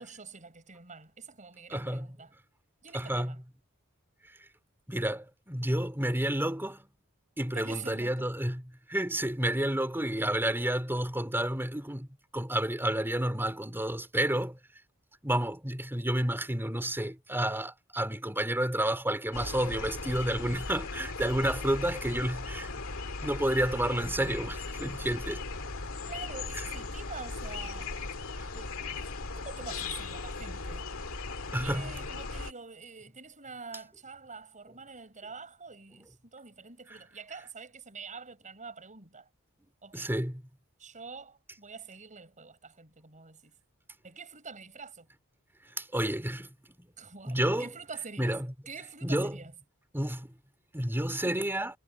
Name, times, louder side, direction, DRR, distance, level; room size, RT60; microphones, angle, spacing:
voice 1, 0.0-2.3 2.8-3.4 7.5-8.3 26.0-28.0 28.5-30.9 31.5-39.3 39.8-40.1 40.8-43.6 44.0-45.1 47.0-49.6 51.2-51.5, right 4 dB, 35° right, 6.6 m, -46 dB
voice 2, 1.7-2.1 2.9-3.3 4.9-6.9 7.4-8.6 8.9-12.1 12.3-14.6 15.2-22.7 23.2-25.4 31.5-31.9 39.9-40.4 45.8-46.5 46.8-46.9 47.3-47.7 48.2-48.5 49.0-49.3 49.9-50.3 50.7-51.7, right 1 dB, 10° right, 3.8 m, -30 dB
sound 1, 19.3-32.5, left 3 dB, 70° left, 2.2 m, -38 dB
head